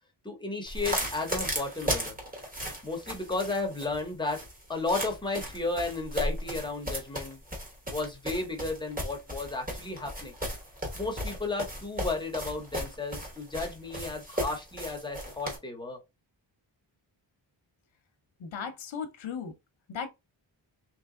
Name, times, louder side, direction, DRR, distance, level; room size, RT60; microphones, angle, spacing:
voice 1, 0.2-2.1 2.8-4.4 4.7-7.4 7.9-10.3 10.9-16.0, left 3 dB, 10° left, 0.9 m, -33 dB
sound 1, 0.7-15.6, equal, 20° right, 1.2 m, -35 dB
voice 2, 18.4-19.5 19.9-20.1, left 6 dB, 75° left, 0.9 m, -36 dB
3.3 x 3.0 x 3.7 m
wide cardioid pair, 180°, 46 cm